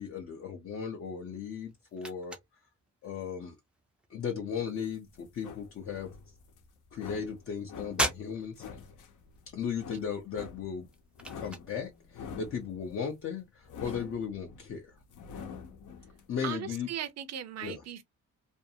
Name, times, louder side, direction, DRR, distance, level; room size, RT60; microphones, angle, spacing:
voice 1, 0.0-2.4 3.0-3.6 4.1-6.1 6.9-8.6 9.5-10.9 11.4-15.0 16.3-16.9 17.6-17.8, left 7 dB, 45° left, 0.5 m, -36 dB
sound 1, 1.2-15.6, right 1 dB, 5° right, 0.4 m, -43 dB
sound 2, 4.5-16.2, left 6 dB, 75° left, 0.8 m, -47 dB
voice 2, 16.4-18.0, right 10 dB, 55° right, 0.5 m, -38 dB
2.6 x 2.3 x 2.6 m
wide cardioid pair, 170°, 31 cm